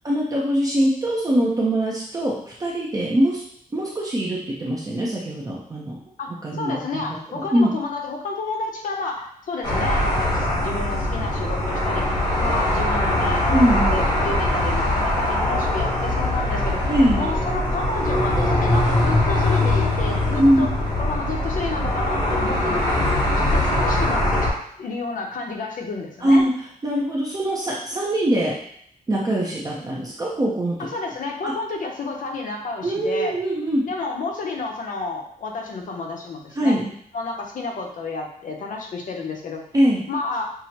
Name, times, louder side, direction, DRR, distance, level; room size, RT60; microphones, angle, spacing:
voice 1, 0.0-3.4 3.7-6.0 6.4-7.7 13.5-13.9 16.9-17.2 20.4-20.6 26.2-26.5 26.8-28.5 29.1-30.9 31.4-31.5 32.8-33.8 36.6-36.8 39.7-40.0, right 1 dB, 25° right, -4 dB, 0.6 m, -22 dB
voice 2, 6.2-12.0 12.4-16.8 17.1-23.0 23.4-24.5 24.8-26.5 30.8-33.3 33.9-36.8 37.1-39.6 40.1-40.4, left 3 dB, 60° left, 1 dB, 0.8 m, -30 dB
sound 1, 9.6-24.5, left 1 dB, 25° left, 1.2 m, -22 dB
5.8 x 2.1 x 2.8 m, 0.68 s
wide cardioid pair, 145°, 15 cm